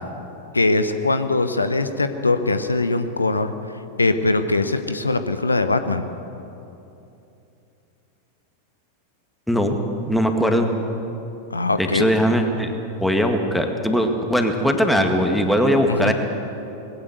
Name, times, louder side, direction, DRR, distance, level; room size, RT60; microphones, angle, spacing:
voice 1, 0.5-3.5 4.0-6.1 11.5-12.1 15.9-16.1, left 3 dB, 80° left, 10 dB, 0.9 m, -21 dB
voice 2, 10.1-10.7 11.8-12.7 13.0-16.1, equal, ahead, 4 dB, 2.0 m, -20 dB
20.5 x 16.0 x 8.1 m, 2.8 s
figure-of-eight pair, 90°, 0 cm